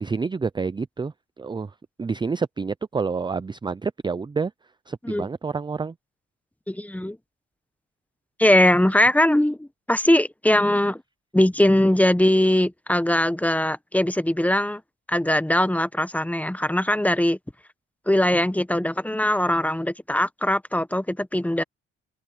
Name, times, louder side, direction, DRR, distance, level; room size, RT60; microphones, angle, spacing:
voice 1, 0.0-4.5 4.9-5.9, right 4 dB, 15° right, 0.5 m, -28 dB
voice 2, 6.7-7.2 8.4-11.0 11.3-14.8 15.1-17.4 18.1-21.6, left 1 dB, 5° left, 0.9 m, -21 dB
open air
cardioid pair, 90°, 30 cm